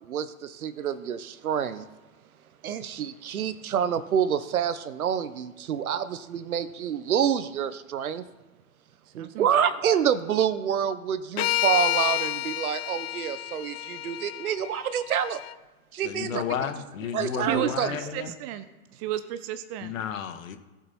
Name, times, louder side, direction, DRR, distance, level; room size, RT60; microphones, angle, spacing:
voice 1, 0.0-1.9 2.6-8.2 9.1-15.4 15.9-16.4 17.1-17.9, right 8 dB, 75° right, 14 dB, 1.0 m, -27 dB
voice 2, 9.1-9.5 16.3-16.4 17.4-18.7 18.9-19.9, right 13 dB, 25° right, 12 dB, 0.5 m, -33 dB
sound 1, 11.4-15.5, left 16 dB, 50° left, 0.4 m, -30 dB
voice 3, 16.0-18.3 19.8-20.6, left 8 dB, 65° left, 8 dB, 1.5 m, -32 dB
17.5 x 7.4 x 4.3 m, 1.2 s
hypercardioid pair, 125°, 43 cm